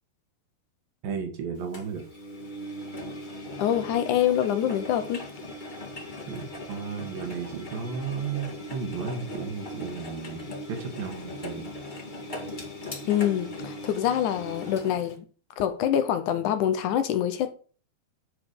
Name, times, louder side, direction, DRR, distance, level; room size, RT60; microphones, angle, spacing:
voice 1, 1.0-2.1 6.3-11.7, right 6 dB, 70° right, 3.6 m, -34 dB
Engine, 1.7-15.2, left 1 dB, 20° left, 1.2 m, -39 dB
voice 2, 3.6-5.2 13.1-15.2 15.6-17.5, left 10 dB, 75° left, 1.9 m, -25 dB
10.5 x 4.9 x 6.7 m
omnidirectional pair, 4.4 m